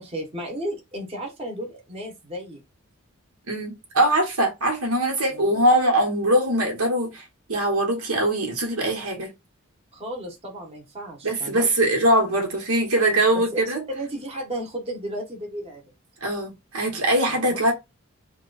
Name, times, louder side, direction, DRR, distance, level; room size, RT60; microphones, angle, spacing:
voice 1, 0.0-2.6 5.3-5.6 9.9-11.7 13.3-15.8 17.3-17.6, right 1 dB, 25° right, 0.9 m, -34 dB
voice 2, 3.5-7.2 7.5-9.3 11.2-13.8 16.2-17.7, right 1 dB, 85° right, 1.2 m, -22 dB
2.9 x 2.3 x 3.8 m
head